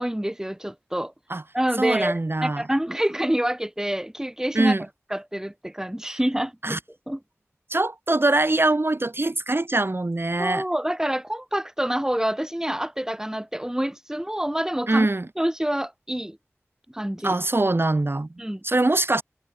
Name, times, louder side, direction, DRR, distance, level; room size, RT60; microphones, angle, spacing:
voice 1, 0.0-1.1 1.5-4.8 5.1-6.8 7.1-7.2 10.4-15.1 15.4-16.4 16.9-17.3 18.4-18.6, right 1 dB, 10° right, 1.4 m, -27 dB
voice 2, 1.8-2.6 4.5-4.8 6.6-6.8 7.7-10.6 14.9-15.3 17.2-18.3 18.6-19.2, right 2 dB, 50° right, 2.4 m, -23 dB
wide cardioid pair, 40°, 5 cm